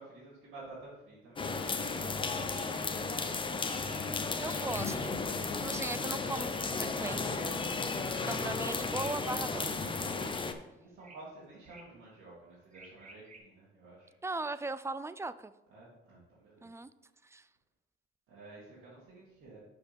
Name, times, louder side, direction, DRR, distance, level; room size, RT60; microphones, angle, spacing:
voice 1, 0.0-2.7 4.5-4.7 10.8-14.1 15.7-16.7 18.3-19.6, right 2 dB, 80° right, -9 dB, 2.5 m, -52 dB
sound 1, 1.4-10.5, left 4 dB, 25° left, 0.7 m, -34 dB
sound 2, 2.3-2.7 3.0-3.1 3.3-3.4 3.6-4.1 4.4-5.1 6.3-6.8 7.8-8.3 8.9-9.6 10.2-10.4 11.0-11.2 11.6-12.0 12.7-13.4, right 2 dB, 40° right, 1.5 m, -52 dB
voice 2, 4.4-5.2 5.6-7.6 8.3-10.0 14.2-15.5 16.6-16.9 17.2-17.5, right 3 dB, 15° right, 14 dB, 0.3 m, -39 dB
5.9 x 5.2 x 5.1 m, 0.94 s
cardioid pair, 90°, 20 cm